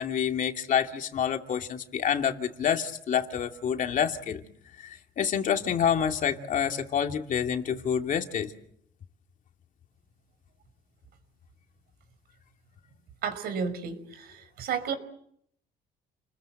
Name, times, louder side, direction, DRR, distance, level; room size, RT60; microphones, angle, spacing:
voice 1, 0.0-4.4 4.8-8.5, left 8 dB, 50° left, 5 dB, 2.6 m, -28 dB
voice 2, 13.2-14.9, right 6 dB, 70° right, 11 dB, 5.3 m, -32 dB
30.0 x 21.5 x 7.8 m, 0.71 s
cardioid pair, 110°, 17 cm